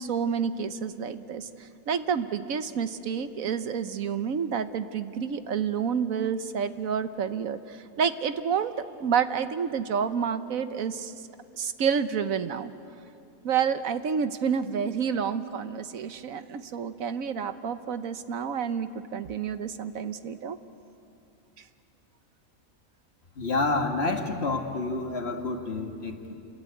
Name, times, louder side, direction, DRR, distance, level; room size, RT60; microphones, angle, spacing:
voice 1, 0.0-8.7 9.0-11.1 11.5-12.7 13.4-20.6, right 7 dB, 70° right, 11 dB, 1.3 m, -29 dB
voice 2, 23.4-26.3, left 3 dB, 45° left, 4 dB, 2.0 m, -29 dB
29.0 x 21.5 x 9.2 m, 2.7 s
omnidirectional pair, 1.5 m